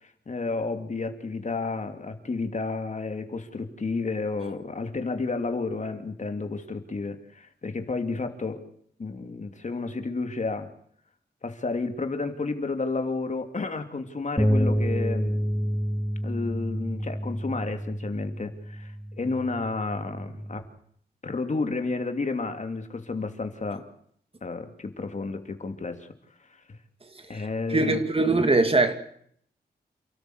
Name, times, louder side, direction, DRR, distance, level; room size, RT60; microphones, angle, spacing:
voice 1, 0.0-8.6 9.0-10.7 11.4-15.3 16.2-20.6 21.2-23.8 24.4-26.1 27.3-28.0, left 3 dB, 45° left, 6 dB, 2.9 m, -31 dB
sound 1, 14.4-20.6, equal, 5° left, 4.4 m, -29 dB
voice 2, 27.7-28.9, right 2 dB, 35° right, 8 dB, 2.7 m, -21 dB
29.0 x 13.5 x 8.1 m, 0.65 s
cardioid pair, 80°, 17 cm